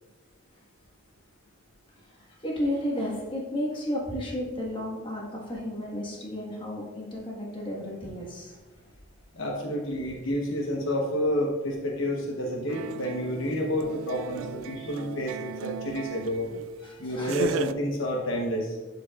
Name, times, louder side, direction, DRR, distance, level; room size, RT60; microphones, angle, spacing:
voice 1, 1.9-8.6 12.9-13.0 16.8-17.6, left 1 dB, 25° left, -3 dB, 1.5 m, -33 dB
voice 2, 9.3-16.5 16.8-18.8, equal, 75° left, 0 dB, 1.0 m, -29 dB
sound 1, 12.7-16.7 17.2-17.7, right 7 dB, 85° right, 0.3 m, -36 dB
11.5 x 4.8 x 2.4 m, 1.2 s
head